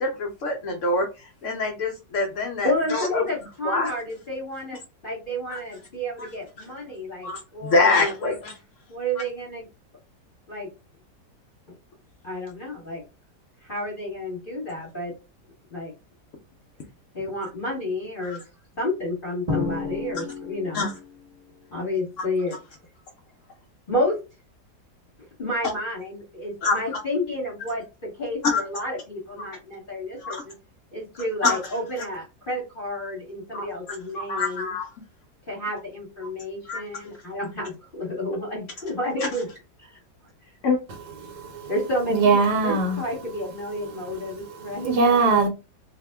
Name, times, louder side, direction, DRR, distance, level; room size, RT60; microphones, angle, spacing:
voice 1, 0.0-3.2 3.6-3.9 5.5-5.6 6.2-6.3 7.2-8.6 18.2-18.4 20.1-20.2 20.7-20.9 22.2-22.3 26.6-26.8 28.4-28.6 30.2-30.4 31.4-31.7 32.0-32.1 33.5-34.9 36.6-36.8 39.2-39.3 40.6-40.8, left 3 dB, 75° left, 0.7 m, -25 dB
voice 2, 2.6-7.9 8.2-8.3 8.9-9.7 10.5-10.7 12.2-13.0 13.6-15.1 15.7-15.9 17.1-18.4 18.8-20.9 21.7-22.5 23.9-24.2 25.4-30.5 30.9-34.7 35.5-39.5 39.8-40.0 41.7-44.9, left 1 dB, 35° left, 1.1 m, -30 dB
Drum, 19.5-21.2, left 3 dB, 35° right, 0.6 m, -31 dB
voice 3, 42.1-43.0 44.9-45.5, right 4 dB, 75° right, 1.2 m, -19 dB
2.8 x 2.1 x 3.3 m
omnidirectional pair, 1.8 m